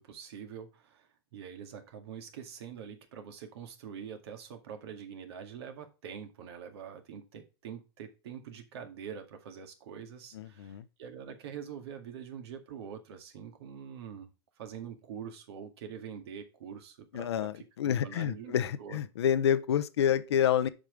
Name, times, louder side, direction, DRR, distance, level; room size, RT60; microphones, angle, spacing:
voice 1, 0.0-14.3 14.6-19.0, right 7 dB, 70° right, 2.1 m, -45 dB
voice 2, 10.3-10.8 17.1-20.7, left 9 dB, 80° left, 0.7 m, -28 dB
7.2 x 5.4 x 5.1 m
hypercardioid pair, 110°, 14 cm